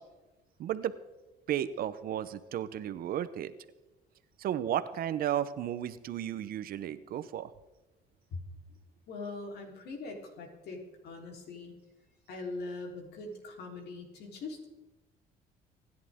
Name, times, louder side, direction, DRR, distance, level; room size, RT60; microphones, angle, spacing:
voice 1, 0.6-0.9 1.5-3.5 4.4-7.5, right 10 dB, 60° right, 14 dB, 0.9 m, -33 dB
voice 2, 9.1-11.7 12.3-14.7, left 3 dB, 75° left, 2 dB, 3.9 m, -42 dB
25.5 x 11.0 x 3.7 m, 1.1 s
cardioid pair, 110°, 17 cm